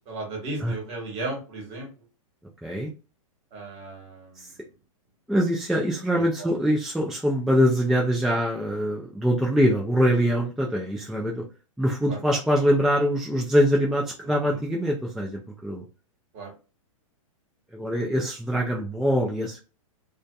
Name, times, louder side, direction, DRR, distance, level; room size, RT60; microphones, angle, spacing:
voice 1, 0.1-1.9 3.5-4.4 6.1-6.5 12.1-12.2 14.4-14.6 16.3-16.5 19.0-19.1, right 2 dB, 40° right, 1 dB, 1.3 m, -35 dB
voice 2, 5.3-11.4 11.8-15.8 17.7-19.6, equal, ahead, -2 dB, 0.3 m, -23 dB
2.5 x 2.2 x 2.3 m, 0.33 s
hypercardioid pair, 120°, 18 cm